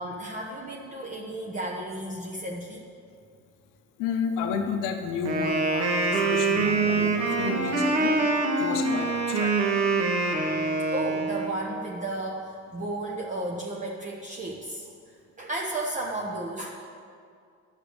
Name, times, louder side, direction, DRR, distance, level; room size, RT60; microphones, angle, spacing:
voice 1, 0.0-2.8 10.9-14.9 15.4-16.7, right 1 dB, 25° right, -2 dB, 1.0 m, -33 dB
voice 2, 4.0-8.2 8.6-9.6, left 6 dB, 85° left, 5 dB, 1.0 m, -32 dB
Wind instrument woodwind instrument, 5.2-11.5, right 3 dB, 55° right, 1.7 m, -25 dB
sound 1, 6.5-10.1, right 4 dB, 80° right, 2.8 m, -39 dB
11.0 x 6.6 x 8.1 m, 2.3 s
cardioid pair, 135°, 30 cm